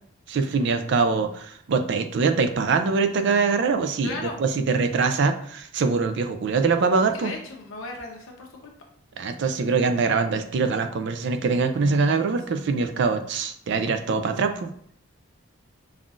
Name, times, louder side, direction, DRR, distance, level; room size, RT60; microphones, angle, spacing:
voice 1, 0.3-7.3 9.2-14.7, right 4 dB, 55° right, 8 dB, 0.3 m, -23 dB
voice 2, 4.0-4.4 7.1-8.7, left 2 dB, 75° left, 1 dB, 0.8 m, -36 dB
5.4 x 2.4 x 2.4 m, 0.63 s
head